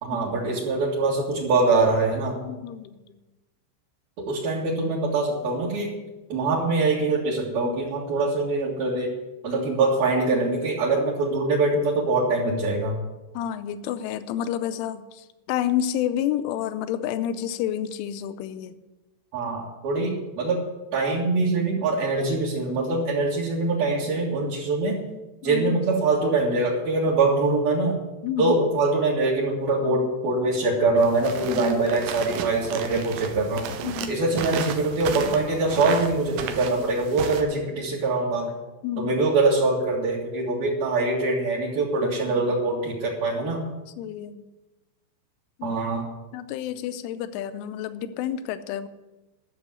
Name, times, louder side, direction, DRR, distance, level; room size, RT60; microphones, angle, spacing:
voice 1, 0.0-2.4 4.2-5.9 6.3-9.1 9.4-13.0 19.3-20.6 20.9-25.0 25.4-28.0 28.4-33.7 34.1-38.5 39.0-43.6 45.6-46.1, right 3 dB, 55° right, -6 dB, 3.3 m, -23 dB
voice 2, 2.4-3.0 13.3-18.8 25.4-25.8 28.2-28.5 31.5-31.8 33.8-34.2 38.8-39.2 42.0-42.5 44.0-44.5 45.6-45.8 46.3-48.9, left 10 dB, 85° left, 10 dB, 3.2 m, -29 dB
sound 1, 31.0-37.4, right 8 dB, 80° right, 3.3 m, -34 dB
13.0 x 7.0 x 9.6 m, 1.1 s
omnidirectional pair, 5.7 m